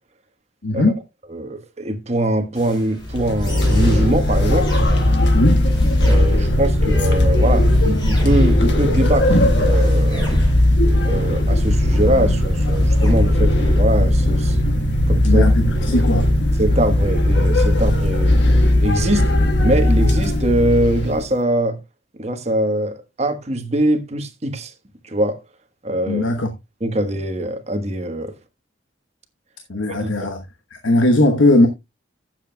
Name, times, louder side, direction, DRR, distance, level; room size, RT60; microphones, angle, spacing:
voice 1, 0.6-1.0 5.3-5.6 15.2-16.3 26.1-26.5 29.7-30.4 30.7-31.7, left 1 dB, 85° left, 1.1 m, -18 dB
voice 2, 1.3-4.7 6.0-10.3 11.0-14.6 15.1-15.5 15.9-16.0 16.6-18.3 18.8-19.2 19.6-21.8 22.2-24.7 25.0-25.4 25.8-26.3 26.8-28.3 29.9-30.3, right 1 dB, 35° right, 1.3 m, -22 dB
sound 1, 2.5-14.5, left 1 dB, 25° left, 4.8 m, -31 dB
sound 2, 3.0-21.3, left 1 dB, 60° left, 1.4 m, -17 dB
16.0 x 7.5 x 2.3 m
head